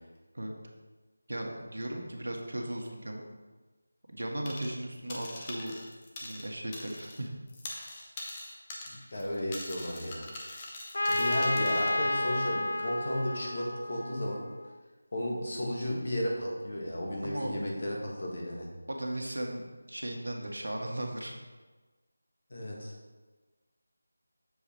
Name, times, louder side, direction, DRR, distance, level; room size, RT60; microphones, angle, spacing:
voice 1, 1.3-3.2 4.1-5.7 6.2-7.3 17.2-17.5 18.9-21.3, right 1 dB, 90° right, 1 dB, 1.5 m, -36 dB
sound 1, 4.5-4.8 5.1-7.2 7.5-12.0, left 2 dB, 15° left, 0.6 m, -43 dB
voice 2, 8.9-10.3 11.1-14.5 15.1-18.7 22.5-22.9, equal, 40° left, -1 dB, 1.5 m, -34 dB
Trumpet, 10.9-14.7, left 2 dB, 55° left, 0.4 m, -31 dB
7.2 x 5.0 x 4.4 m, 1.3 s
figure-of-eight pair, 175°, 0 cm